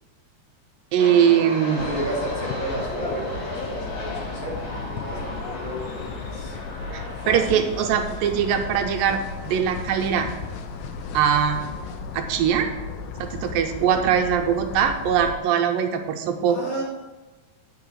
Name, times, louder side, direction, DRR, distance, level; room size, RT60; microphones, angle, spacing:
voice 1, 0.9-1.8 6.9-10.3 11.1-11.6 12.1-12.7 13.2-16.6, right 8 dB, 80° right, 4 dB, 2.5 m, -21 dB
sound 1, 1.0-15.9, left 1 dB, 75° left, 4.3 m, -38 dB
voice 2, 1.7-6.6 7.2-8.0 16.4-16.8, right 1 dB, 45° left, -6 dB, 3.6 m, -32 dB
sound 2, 1.8-15.4, left 5 dB, 90° left, 2.3 m, -35 dB
9.2 x 5.0 x 6.3 m, 1.2 s
omnidirectional pair, 4.0 m